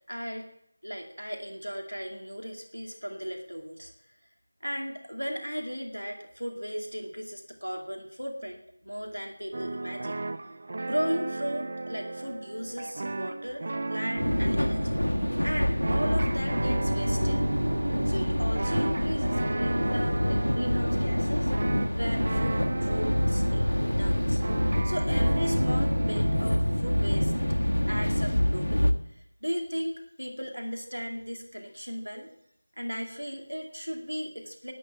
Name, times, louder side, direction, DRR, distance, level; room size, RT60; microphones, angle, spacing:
voice 1, 0.1-0.5 0.8-3.9 4.6-10.2 10.8-14.9 15.4-17.6 18.0-21.5 21.9-24.4 24.8-27.3 27.9-32.3 32.8-34.7, equal, 90° right, 3 dB, 2.3 m, -36 dB
sound 1, 9.5-28.8, right 2 dB, 40° right, 0.5 m, -35 dB
sound 2, 14.2-28.9, left 1 dB, 80° left, 1.2 m, -26 dB
12.0 x 8.6 x 8.4 m, 0.75 s
figure-of-eight pair, 170°, 0 cm